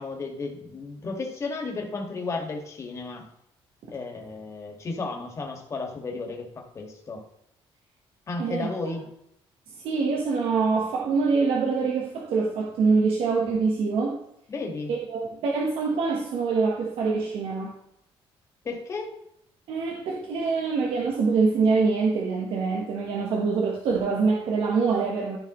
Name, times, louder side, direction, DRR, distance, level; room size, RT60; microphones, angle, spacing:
voice 1, 0.0-3.3 3.9-7.2 8.3-9.1 14.5-14.9 18.6-19.1, left 3 dB, 30° left, 2 dB, 1.7 m, -33 dB
voice 2, 8.4-8.9 9.8-14.2 14.9-17.8 19.7-25.4, right 4 dB, 70° right, -1 dB, 1.2 m, -25 dB
13.0 x 5.2 x 3.0 m, 0.76 s
cardioid pair, 150°, 10 cm